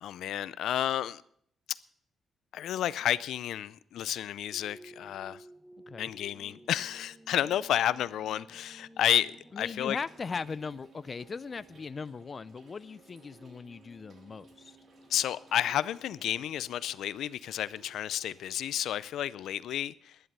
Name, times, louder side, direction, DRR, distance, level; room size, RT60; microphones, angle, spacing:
voice 1, 0.0-1.2 2.5-5.4 6.0-10.0 15.1-20.2, left 11 dB, 90° left, 0.4 m, -31 dB
sound 1, 4.5-17.0, right 2 dB, 15° right, 1.1 m, -56 dB
voice 2, 9.5-14.8, left 5 dB, 35° left, 0.4 m, -39 dB
Trickle dribble / Fill (with liquid), 9.9-18.9, right 3 dB, 50° right, 2.6 m, -62 dB
11.5 x 11.0 x 6.7 m
cardioid pair, 140°, 0 cm